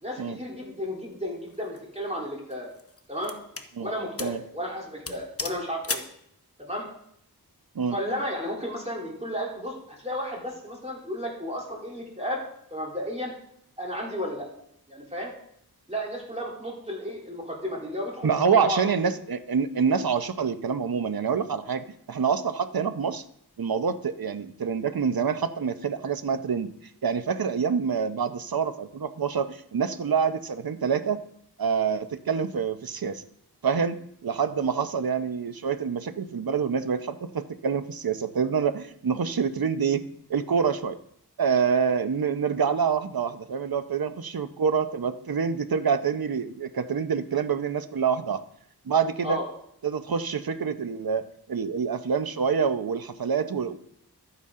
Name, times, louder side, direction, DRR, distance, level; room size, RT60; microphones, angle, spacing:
voice 1, 0.0-2.7 3.1-3.3 3.8-6.0 6.6-6.9 7.9-12.4 12.7-13.3 13.8-14.5 14.9-15.3 15.9-19.1 49.2-49.4, equal, 15° right, -3 dB, 3.2 m, -33 dB
sound 1, 1.5-1.8 2.5-3.7 4.2-4.4 4.7-4.8 5.1-6.2, left 4 dB, 35° left, 0.9 m, -35 dB
voice 2, 18.2-23.2 23.6-26.7 27.0-31.2 31.6-33.2 33.6-40.0 40.3-41.0 41.4-48.4 48.9-49.4 49.8-53.8, right 6 dB, 65° right, 11 dB, 0.8 m, -26 dB
12.5 x 9.8 x 3.7 m, 0.71 s
wide cardioid pair, 80°, 39 cm